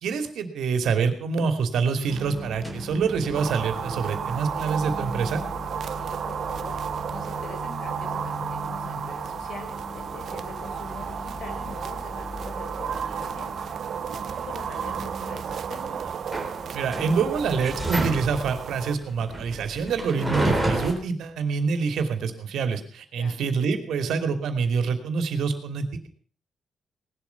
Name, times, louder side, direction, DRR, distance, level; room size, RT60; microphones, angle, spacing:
voice 1, 0.0-5.4 16.7-26.1, right 5 dB, 80° right, 8 dB, 2.8 m, -26 dB
sound 1, 2.1-20.9, right 1 dB, ahead, 3.8 m, -34 dB
sound 2, 3.3-19.0, right 8 dB, 50° right, 0.7 m, -33 dB
voice 2, 5.9-16.0 23.2-23.4, left 4 dB, 55° left, 6 dB, 4.4 m, -44 dB
19.0 x 12.5 x 5.9 m, 0.42 s
wide cardioid pair, 175°, 0 cm